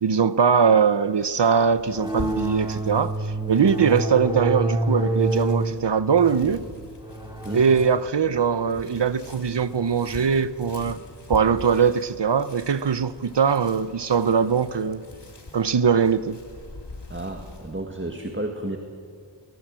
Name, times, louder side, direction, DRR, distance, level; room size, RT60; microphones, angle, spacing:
voice 1, 0.0-6.6 7.5-11.0 11.3-15.0 15.5-16.4, right 6 dB, 60° right, 0.7 m, -21 dB
sound 1, 1.2-17.8, left 2 dB, 60° left, 2.6 m, -43 dB
sound 2, 1.9-10.0, right 2 dB, 10° right, 3.1 m, -29 dB
voice 2, 17.1-18.8, right 1 dB, 25° right, 1.8 m, -32 dB
22.5 x 20.0 x 7.6 m
wide cardioid pair, 45°, 47 cm